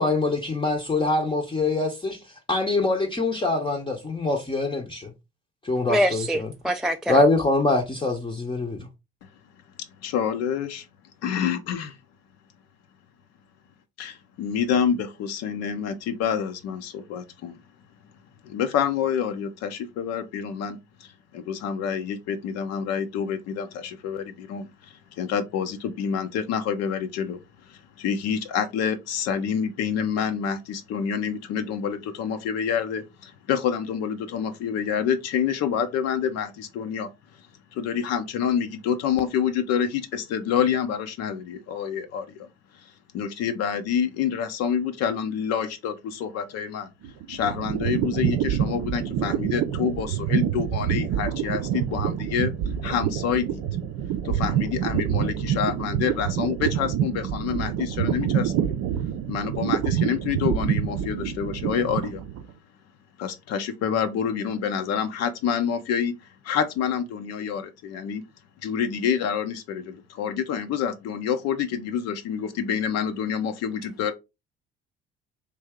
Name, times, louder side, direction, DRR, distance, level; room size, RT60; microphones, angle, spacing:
voice 1, 0.0-2.2 2.5-5.1 5.6-6.5 7.1-8.9, left 2 dB, 15° left, 0.7 m, -24 dB
voice 2, 5.9-7.2, equal, ahead, 0.3 m, -24 dB
voice 3, 10.0-10.9 11.2-12.0 14.0-17.6 18.4-37.1 37.7-42.3 42.7-46.9 47.3-52.5 52.8-53.6 54.2-58.7 59.3-62.2 63.2-66.1 66.4-68.2 68.6-74.1, left 7 dB, 55° left, 0.6 m, -27 dB
sound 1, 47.0-62.5, right 9 dB, 55° right, 0.5 m, -27 dB
3.3 x 2.7 x 3.5 m
hypercardioid pair, 55°, 30 cm